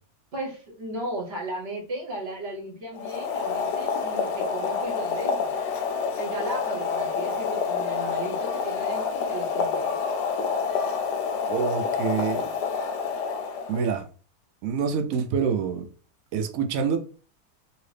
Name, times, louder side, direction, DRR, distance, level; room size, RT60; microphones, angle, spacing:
voice 1, 0.3-5.7 6.2-10.0, right 1 dB, 45° right, 0.9 m, -35 dB
Boiling, 2.9-13.9, left 5 dB, 75° left, 1.1 m, -28 dB
voice 2, 11.5-12.5 13.7-14.1 14.6-15.9 16.3-17.0, right 6 dB, 75° right, 0.7 m, -26 dB
2.9 x 2.8 x 3.2 m
omnidirectional pair, 1.9 m